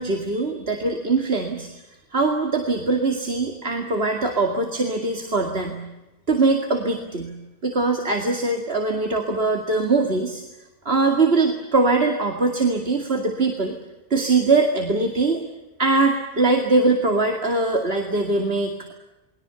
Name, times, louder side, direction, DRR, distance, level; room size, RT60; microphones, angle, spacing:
voice 1, 0.0-1.7 2.1-5.8 6.3-7.3 7.6-10.4 10.9-13.7 14.1-15.4 15.8-18.9, right 3 dB, 70° right, 2 dB, 2.6 m, -22 dB
30.0 x 21.5 x 7.0 m, 1.0 s
omnidirectional pair, 1.1 m